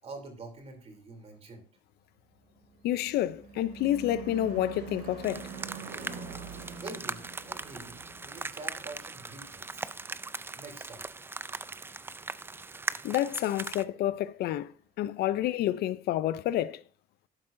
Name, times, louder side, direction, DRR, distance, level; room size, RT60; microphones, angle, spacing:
voice 1, 0.0-1.7 6.8-9.9 10.6-11.1, right 3 dB, 40° right, 3.0 m, -46 dB
Car passing by / Truck / Engine, 2.4-11.1, right 5 dB, 70° right, 2.5 m, -45 dB
voice 2, 2.8-5.5 13.0-14.7 15.0-16.8, left 13 dB, 70° left, 0.5 m, -29 dB
sound 1, 5.2-13.8, right 3 dB, 15° right, 0.4 m, -40 dB
12.0 x 7.6 x 2.6 m
cardioid pair, 110°, 17 cm